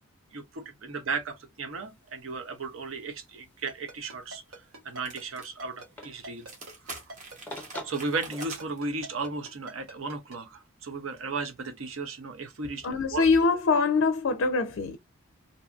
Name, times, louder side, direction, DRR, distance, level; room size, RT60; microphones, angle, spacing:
voice 1, 0.3-6.5 6.8-7.0 7.8-13.3, right 4 dB, 70° right, 0.6 m, -35 dB
sound 1, 1.7-8.6, left 1 dB, 10° left, 0.5 m, -49 dB
Ringtone, 3.7-10.4, right 1 dB, 85° right, 1.1 m, -43 dB
sound 2, 5.1-5.5 5.8-5.9 6.4-8.8, right 3 dB, 35° right, 0.9 m, -44 dB
voice 2, 12.8-15.0, left 4 dB, 65° left, 0.4 m, -24 dB
2.6 x 2.5 x 2.3 m
head